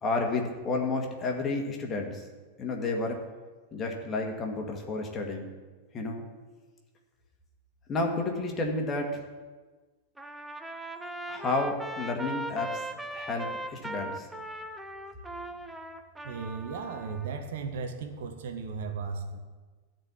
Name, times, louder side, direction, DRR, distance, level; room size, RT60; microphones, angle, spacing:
voice 1, 0.0-2.2 2.6-3.2 3.7-5.5 5.9-6.3 7.9-9.2 11.3-12.9 13.1-14.3, left 3 dB, 25° left, 2 dB, 1.9 m, -31 dB
Trumpet, 10.2-17.3, right 1 dB, 5° right, 0.8 m, -39 dB
voice 2, 16.2-19.4, right 5 dB, 55° right, 6 dB, 1.2 m, -36 dB
13.0 x 4.4 x 8.4 m, 1.3 s
figure-of-eight pair, 90°, 0 cm